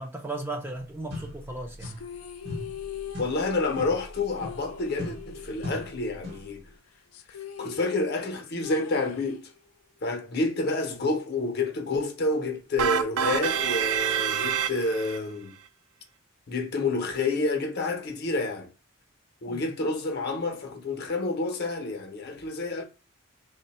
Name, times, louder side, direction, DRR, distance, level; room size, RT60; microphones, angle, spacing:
voice 1, 0.0-1.9 19.5-19.6, right 2 dB, 10° right, 0.4 m, -36 dB
sound 1, 1.1-2.2 2.5-6.6, left 1 dB, 55° right, 0.9 m, -40 dB
sound 2, 1.8-6.5 6.7-6.8 7.1-9.8, left 8 dB, 90° left, 0.4 m, -42 dB
voice 2, 3.2-6.6 7.6-9.5 10.0-15.5 16.5-18.7 19.4-22.8, left 2 dB, 50° left, 0.6 m, -29 dB
sound 3, 12.8-15.2, right 8 dB, 85° right, 0.3 m, -26 dB
3.6 x 2.1 x 4.0 m
head